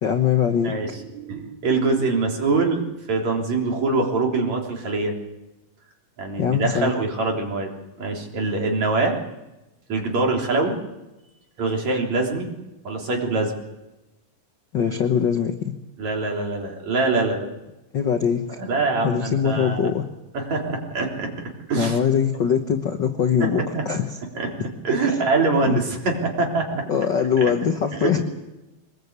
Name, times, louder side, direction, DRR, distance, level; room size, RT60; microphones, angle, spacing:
voice 1, 0.0-0.7 6.4-6.9 14.7-15.7 17.9-18.6 19.0-20.0 21.8-24.0 25.7-25.8 26.9-28.2, left 7 dB, 65° left, 5 dB, 1.1 m, -22 dB
voice 2, 0.6-2.8 3.1-5.1 6.2-7.7 8.0-9.2 9.9-10.8 11.6-12.5 12.8-13.5 16.0-17.5 18.6-19.9 20.3-21.3 21.7-22.0 23.4-23.5 23.7-23.8 24.3-24.5 24.8-26.8 27.4-27.5 28.0-28.1, right 3 dB, 55° right, 0 dB, 4.8 m, -24 dB
24.0 x 20.5 x 8.2 m, 1.0 s
omnidirectional pair, 3.9 m